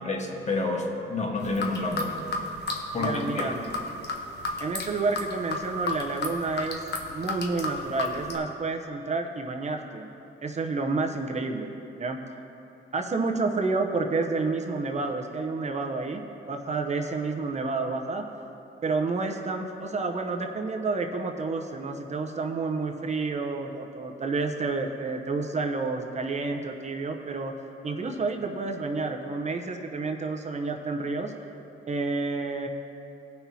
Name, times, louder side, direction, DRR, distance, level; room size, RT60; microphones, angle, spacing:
voice 1, 0.0-2.2 2.9-3.6, left 2 dB, 35° left, 0 dB, 1.4 m, -29 dB
sound 1, 1.4-8.4, left 3 dB, 55° left, 1.1 m, -32 dB
voice 2, 2.9-3.5 4.6-6.8 7.1-10.1 10.4-12.2 12.9-18.3 18.8-27.5 27.8-31.3 31.9-32.7, right 3 dB, 35° right, 3 dB, 0.8 m, -30 dB
17.5 x 6.0 x 2.8 m, 3.0 s
cardioid pair, 90°, 20 cm